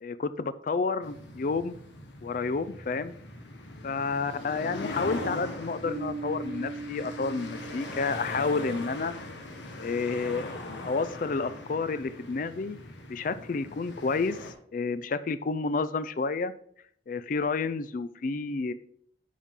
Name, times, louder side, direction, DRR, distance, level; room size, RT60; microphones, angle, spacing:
voice 1, 0.0-1.8 2.2-3.1 3.8-9.1 9.8-10.5 10.8-12.8 13.1-14.4 14.7-16.5 17.1-18.7, left 4 dB, 45° left, 13 dB, 0.4 m, -30 dB
sound 1, 1.0-14.5, left 2 dB, 85° left, 1.3 m, -40 dB
Bass guitar, 5.8-9.3, right 3 dB, 40° right, 1.2 m, -40 dB
8.4 x 5.6 x 3.6 m, 0.65 s
head